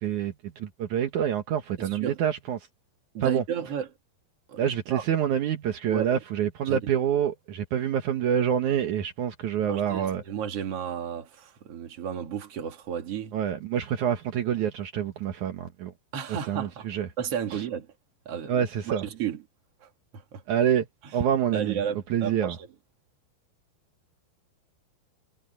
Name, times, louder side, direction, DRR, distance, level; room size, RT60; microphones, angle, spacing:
voice 1, 0.0-2.6 3.2-3.4 4.6-10.2 13.3-15.9 16.5-17.1 18.5-19.0 20.5-20.9 21.1-21.8 22.1-22.6, right 9 dB, 75° right, 1.8 m, -27 dB
voice 2, 1.8-2.2 3.1-3.9 4.5-4.6 4.9-5.0 5.9-6.2 6.7-6.8 9.6-13.4 16.1-17.9 18.3-19.4 19.8-20.4 21.0-21.2 21.5-22.7, right 8 dB, 45° right, 2.1 m, -33 dB
omnidirectional pair, 5.5 m